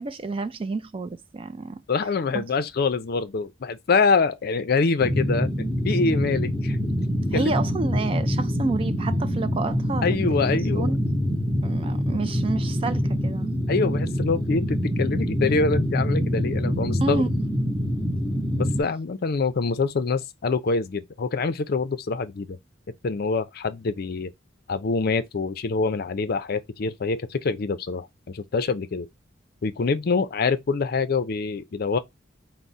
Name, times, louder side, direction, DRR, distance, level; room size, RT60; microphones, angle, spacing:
voice 1, 0.0-1.8 2.3-2.4 7.3-11.0 11.6-13.5 17.0-17.3, right 3 dB, 30° right, 0.3 m, -29 dB
voice 2, 1.9-6.8 7.3-7.5 10.0-10.9 13.7-17.2 18.6-22.6 23.0-24.3 24.7-29.1 29.6-32.0, left 4 dB, 55° left, 0.5 m, -25 dB
sound 1, 5.0-18.8, equal, 5° left, 0.7 m, -25 dB
4.6 x 2.1 x 4.0 m
head